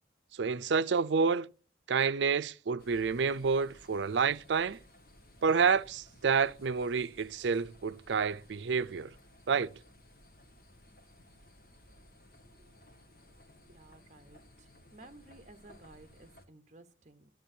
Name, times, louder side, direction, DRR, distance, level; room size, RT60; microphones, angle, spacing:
voice 1, 0.4-1.5 1.9-4.8 5.4-9.1 9.5-9.7, right 5 dB, 75° right, 0.5 m, -29 dB
sound 1, 2.8-16.5, left 1 dB, 50° left, 1.8 m, -58 dB
voice 2, 13.6-17.3, right 2 dB, 40° right, 1.0 m, -56 dB
12.0 x 12.0 x 2.7 m
head